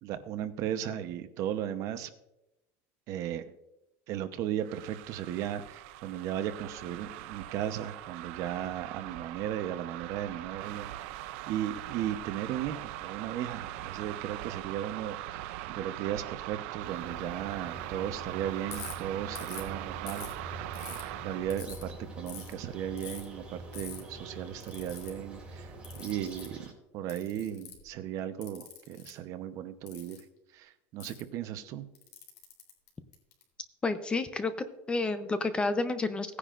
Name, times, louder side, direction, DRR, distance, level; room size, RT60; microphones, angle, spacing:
voice 1, 0.0-2.1 3.1-3.5 4.1-10.9 11.5-20.7 21.2-26.7 26.9-30.2 30.5-31.8, right 11 dB, 50° right, 10 dB, 0.9 m, -36 dB
sound 1, 4.6-21.6, right 15 dB, 75° right, 0.5 m, -41 dB
sound 2, 16.8-26.7, right 2 dB, 15° right, 2.8 m, -46 dB
Ratchet pawl, 18.7-18.9 19.4-19.7 20.1-21.0 21.5-21.8 22.3-22.5 23.0-23.2 23.7-24.0 24.6-25.1 25.8-26.5 27.1-27.9 28.4-29.1 29.9-30.2 31.0-31.2 31.9-33.4, left 8 dB, 65° left, 3.6 m, -45 dB
voice 2, 33.8-34.5 34.9-36.4, left 3 dB, 15° left, 11 dB, 0.7 m, -30 dB
18.0 x 9.8 x 2.5 m, 0.88 s
cardioid pair, 150°, 7 cm